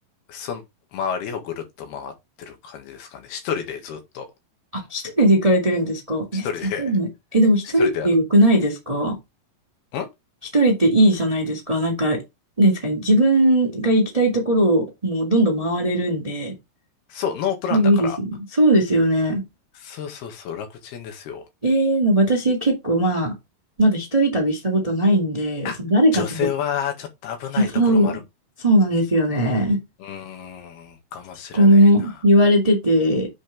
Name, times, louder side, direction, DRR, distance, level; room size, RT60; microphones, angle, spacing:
voice 1, 0.3-0.6 0.9-2.1 2.4-4.3 6.3-6.9 7.8-8.2 9.9-10.1 17.1-18.2 19.8-21.4 25.7-25.8 26.1-28.2 30.0-32.1, left 8 dB, 75° left, 3.7 m, -30 dB
voice 2, 4.7-6.5 6.8-9.2 10.5-12.2 12.6-16.5 17.7-18.1 18.6-19.4 21.6-23.3 23.8-26.5 27.5-28.1 28.6-29.8 31.5-33.3, right 1 dB, 15° right, 1.1 m, -18 dB
7.8 x 6.5 x 3.4 m
omnidirectional pair, 4.6 m